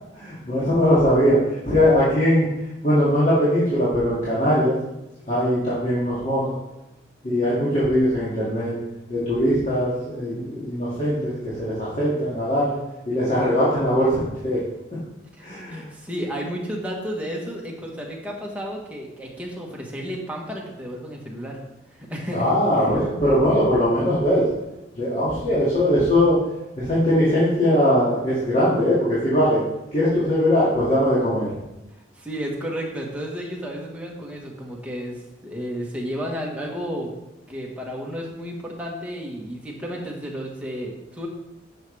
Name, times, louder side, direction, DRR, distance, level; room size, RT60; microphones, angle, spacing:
voice 1, 0.1-2.5 2.8-4.8 5.3-6.5 7.2-8.8 9.1-12.8 13.0-14.6 15.4-15.8 22.3-24.5 24.9-26.4 26.8-29.6 29.9-31.5, equal, 35° left, -10 dB, 2.2 m, -20 dB
voice 2, 15.4-21.6 21.9-23.0 32.1-37.2 37.5-41.3, equal, 5° right, -2 dB, 1.4 m, -32 dB
10.5 x 6.5 x 3.4 m, 0.93 s
head